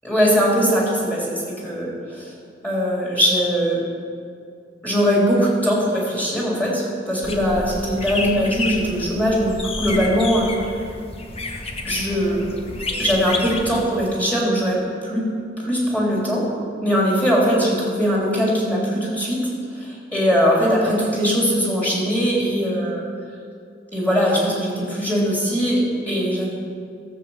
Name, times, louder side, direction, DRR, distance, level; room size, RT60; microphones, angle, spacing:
voice 1, 0.0-2.3 2.6-3.9 4.8-10.5 11.8-12.6 13.0-15.3 15.6-16.4 16.8-23.0 23.9-26.5, equal, 10° left, -4 dB, 3.3 m, -21 dB
sound 1, 7.2-13.8, left 2 dB, 30° left, 1.1 m, -30 dB
13.5 x 7.5 x 7.2 m, 2.3 s
head